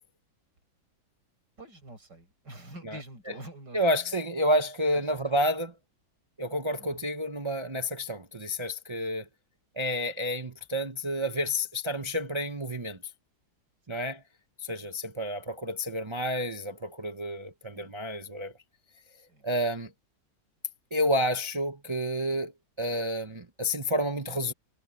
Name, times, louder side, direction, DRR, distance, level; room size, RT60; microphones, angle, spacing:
voice 1, 1.6-4.2 4.9-5.2 6.8-7.0 13.9-14.0 14.8-14.9 17.7-17.9 19.3-19.4, right 1 dB, 70° right, 7.6 m, -47 dB
voice 2, 3.7-5.7 6.4-9.2 9.8-13.0 13.9-14.2 14.6-18.5 19.4-19.9 20.9-22.5 22.8-24.5, equal, 25° right, 0.6 m, -30 dB
omnidirectional pair, 1.9 m